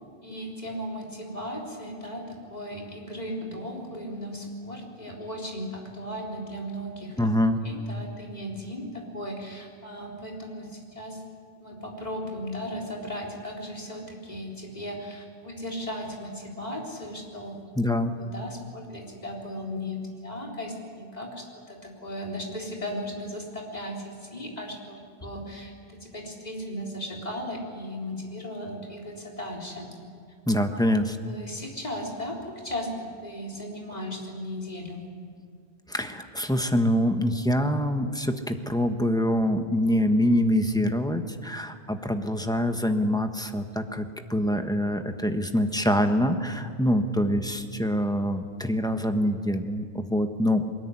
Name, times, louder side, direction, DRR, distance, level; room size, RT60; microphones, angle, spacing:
voice 1, 0.2-7.2 7.6-11.2 11.6-17.6 18.2-29.9 30.7-30.8 31.2-35.1, equal, 40° left, -1 dB, 4.1 m, -36 dB
voice 2, 7.2-7.6 17.7-18.2 30.5-31.2 35.9-50.7, equal, 5° left, 6 dB, 1.3 m, -25 dB
22.5 x 20.0 x 9.9 m, 2.1 s
omnidirectional pair, 1.1 m